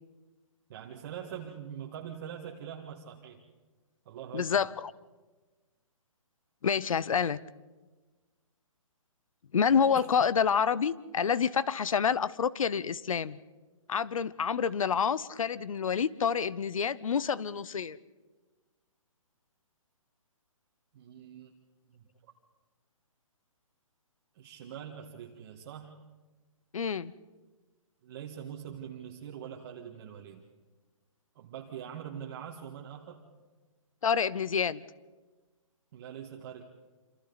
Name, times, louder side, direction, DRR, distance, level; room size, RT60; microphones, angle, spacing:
voice 1, 0.7-3.4 4.1-4.7 9.9-10.1 20.9-21.5 21.9-22.1 24.3-26.0 28.0-30.4 31.4-33.2 35.9-36.6, right 9 dB, 35° right, -1 dB, 1.8 m, -43 dB
voice 2, 4.3-4.9 6.6-7.4 9.5-13.4 13.9-18.0 26.7-27.1 34.0-34.8, left 7 dB, 70° left, 19 dB, 0.9 m, -28 dB
27.5 x 27.0 x 4.1 m, 1.3 s
hypercardioid pair, 160°, 18 cm